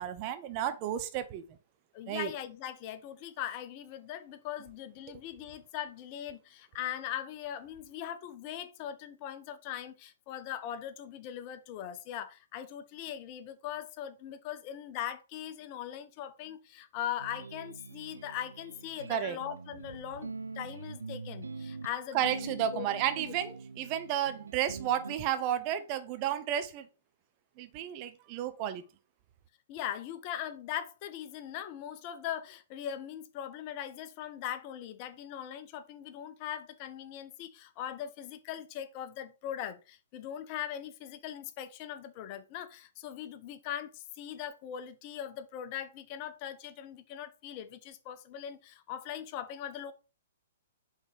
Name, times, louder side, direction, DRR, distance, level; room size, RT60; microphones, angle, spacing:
voice 1, 0.0-1.4 2.1-2.3 19.1-19.4 22.1-26.9 27.6-28.9, right 10 dB, 40° right, 0.8 m, -32 dB
voice 2, 1.9-22.9 23.2-23.3 29.7-49.9, left 10 dB, 40° left, 0.8 m, -40 dB
sound 1, 17.2-25.2, right 4 dB, 85° right, 0.5 m, -44 dB
5.4 x 4.0 x 4.6 m
hypercardioid pair, 120°, 0 cm